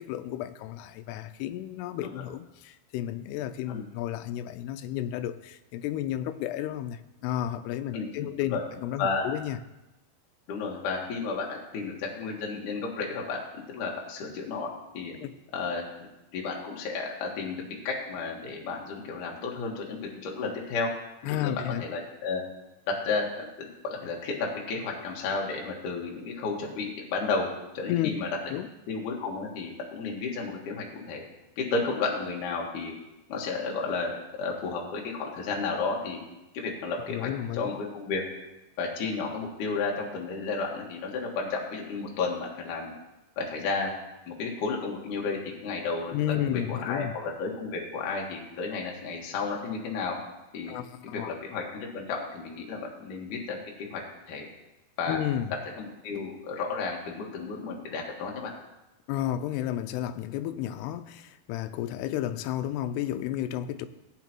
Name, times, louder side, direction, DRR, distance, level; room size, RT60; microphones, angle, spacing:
voice 1, 0.0-9.6 15.1-15.3 21.3-21.8 27.9-28.1 28.5-28.7 37.1-37.7 46.1-47.1 50.7-51.4 55.1-55.5 59.1-63.9, left 12 dB, 85° left, 10 dB, 2.7 m, -32 dB
voice 2, 7.9-8.6 9.0-9.3 10.5-15.1 15.5-15.8 16.3-17.6 17.8-20.9 21.3-22.4 22.9-27.5 27.7-28.3 28.9-31.2 31.6-32.9 33.3-34.1 34.4-36.2 36.5-37.3 37.5-38.2 38.8-42.9 43.4-43.9 44.3-46.1 46.4-50.2 50.5-50.7 51.0-54.0 54.3-54.5 55.0-55.2 55.8-58.5, left 4 dB, 60° left, -1 dB, 2.7 m, -32 dB
16.0 x 9.1 x 3.0 m, 0.97 s
omnidirectional pair, 4.7 m